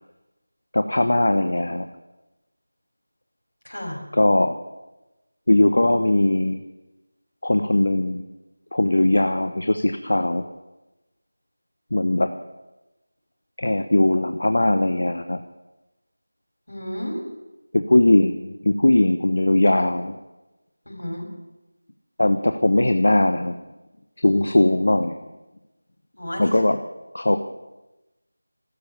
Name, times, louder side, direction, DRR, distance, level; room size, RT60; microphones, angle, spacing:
voice 1, 0.7-1.9 4.1-4.5 5.5-6.6 7.4-8.2 8.7-10.4 11.9-12.3 13.6-15.4 17.7-20.1 22.2-23.6 24.2-25.2 26.4-26.8 27.1-27.4, left 1 dB, 65° left, 8 dB, 1.0 m, -19 dB
voice 2, 3.6-4.0 16.7-17.2 20.9-21.3 26.2-26.6, equal, 85° left, 1 dB, 6.3 m, -31 dB
15.5 x 13.0 x 7.0 m, 1.0 s
figure-of-eight pair, 170°, 0 cm